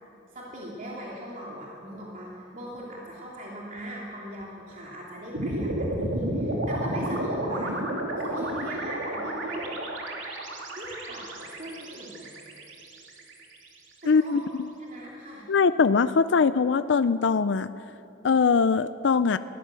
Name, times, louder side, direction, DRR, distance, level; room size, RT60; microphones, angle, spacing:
voice 1, 0.3-7.9 8.2-9.8 10.7-12.3 14.0-14.5 14.8-15.5, equal, 45° right, -4 dB, 2.9 m, -39 dB
sound 1, 5.3-13.6, right 1 dB, 90° right, 2.8 m, -31 dB
voice 2, 14.1-14.7 15.5-17.7 18.2-19.4, left 5 dB, 65° left, 13 dB, 0.5 m, -22 dB
22.0 x 16.0 x 7.6 m, 2.8 s
head